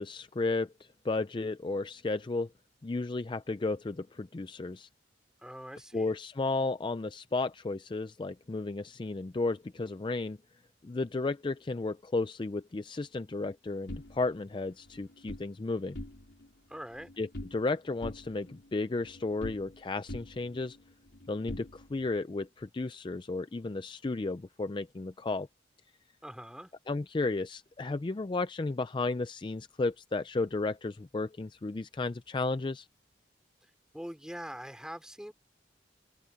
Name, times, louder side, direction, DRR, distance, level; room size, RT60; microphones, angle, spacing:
voice 1, 0.0-2.5 2.8-4.9 5.9-10.4 10.8-16.0 17.2-20.8 21.3-25.5 26.9-32.9, left 3 dB, 25° left, 0.4 m, -33 dB
voice 2, 5.4-6.1 16.7-17.1 26.2-26.7 33.9-35.3, equal, 5° right, 3.5 m, -43 dB
sound 1, 13.9-15.5 15.8-16.5 16.8-17.7 18.0-19.8 20.1-22.2, left 1 dB, 85° left, 3.7 m, -45 dB
head